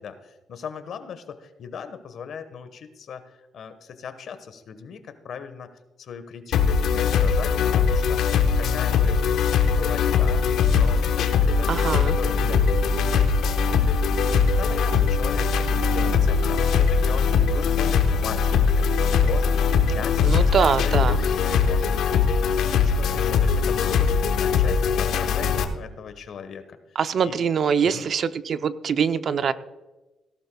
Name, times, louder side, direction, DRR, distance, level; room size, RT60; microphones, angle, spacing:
voice 1, 0.0-5.7 6.0-8.3 8.6-9.2 9.6-11.7 11.9-13.3 13.7-14.2 14.4-19.5 19.9-20.2 20.8-26.8 27.2-27.4 27.8-28.1, left 6 dB, 65° left, 10 dB, 1.3 m, -38 dB
sound 1, 6.5-25.6, left 6 dB, 80° left, 1.1 m, -21 dB
voice 2, 11.7-12.1 20.2-21.2 27.0-29.5, right 6 dB, 55° right, 12 dB, 0.6 m, -23 dB
17.5 x 12.0 x 2.3 m, 1.1 s
cardioid pair, 90°, 0 cm